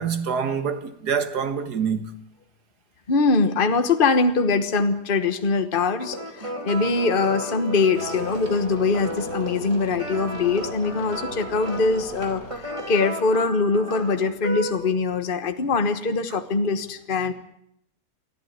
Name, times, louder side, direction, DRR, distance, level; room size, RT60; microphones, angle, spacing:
voice 1, 0.0-2.2, right 6 dB, 80° right, 2.1 m, -26 dB
voice 2, 3.1-17.3, left 4 dB, 35° left, 1.4 m, -23 dB
sound 1, 6.0-14.7, equal, 20° right, 3.3 m, -34 dB
sound 2, 7.9-12.9, right 1 dB, 60° right, 4.5 m, -39 dB
24.0 x 14.5 x 9.4 m
omnidirectional pair, 1.7 m